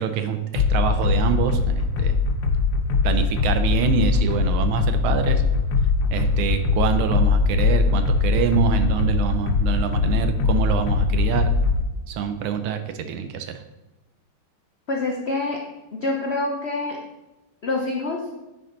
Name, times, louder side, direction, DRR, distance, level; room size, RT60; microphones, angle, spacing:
voice 1, 0.0-2.2 3.0-5.4 6.1-11.5 12.1-13.6, right 8 dB, 80° right, 8 dB, 1.5 m, -25 dB
sound 1, 0.6-11.8, left 4 dB, 65° left, 1.1 m, -21 dB
voice 2, 14.9-15.6 15.9-17.0 17.6-18.3, left 2 dB, 85° left, 0 dB, 0.5 m, -26 dB
10.0 x 4.5 x 3.9 m, 1.0 s
omnidirectional pair, 2.3 m